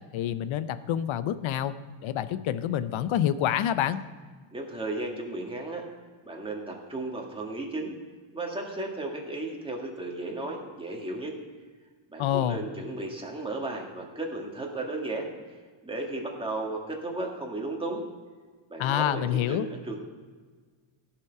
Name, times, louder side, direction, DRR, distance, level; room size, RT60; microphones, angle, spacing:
voice 1, 0.1-1.7 2.0-4.0 12.2-12.6 18.8-19.7, left 11 dB, 70° left, 14 dB, 0.7 m, -27 dB
voice 2, 4.5-5.8 6.3-8.0 8.3-11.3 12.1-15.3 15.8-18.1 18.7-19.2 19.5-20.0, right 2 dB, 10° right, -1 dB, 1.8 m, -34 dB
16.5 x 5.9 x 4.6 m, 1.5 s
cardioid pair, 145°, 49 cm